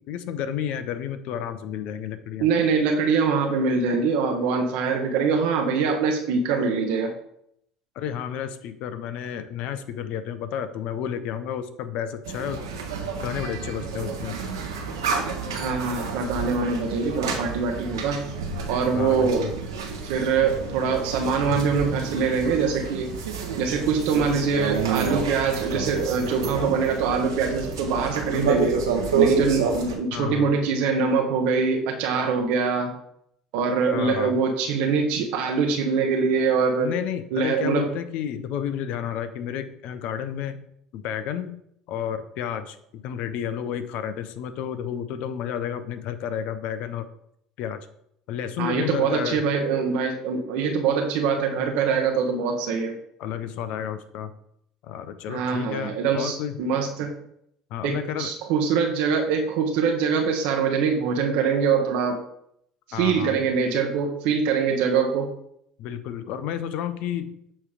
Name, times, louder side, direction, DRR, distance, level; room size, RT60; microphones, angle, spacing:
voice 1, 0.1-2.5 8.0-12.6 13.2-14.4 18.9-19.5 30.1-30.5 33.9-34.3 36.8-40.6 40.9-41.5 41.9-47.0 47.6-47.9 48.3-49.4 53.2-54.3 54.8-56.6 57.7-58.3 62.9-63.4 65.8-67.3, left 9 dB, 60° left, 11 dB, 0.7 m, -31 dB
voice 2, 2.4-7.1 15.5-18.3 18.7-19.5 20.0-23.1 23.6-28.8 29.1-32.9 33.5-36.9 37.3-37.9 48.6-53.0 55.3-57.1 57.8-62.2 62.9-65.3, right 5 dB, 65° right, 3 dB, 0.9 m, -23 dB
sound 1, 12.2-29.9, right 5 dB, 85° right, 1.1 m, -29 dB
7.2 x 3.3 x 5.0 m, 0.73 s
hypercardioid pair, 70°, 2 cm